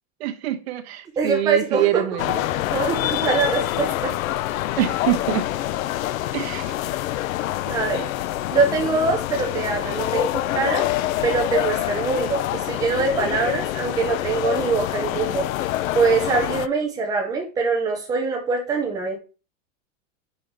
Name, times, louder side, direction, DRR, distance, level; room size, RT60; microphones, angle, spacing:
voice 1, 0.2-2.6 4.8-5.4 6.3-6.7, right 14 dB, 50° right, 1.1 m, -25 dB
voice 2, 1.2-2.0 2.7-4.1 7.6-8.1 8.5-10.9 11.2-15.4 15.9-19.2, right 4 dB, 10° right, 0.5 m, -23 dB
sound 1, 2.2-16.7, left 14 dB, 85° left, 0.6 m, -26 dB
5.5 x 5.5 x 4.5 m
supercardioid pair, 170°, 40 cm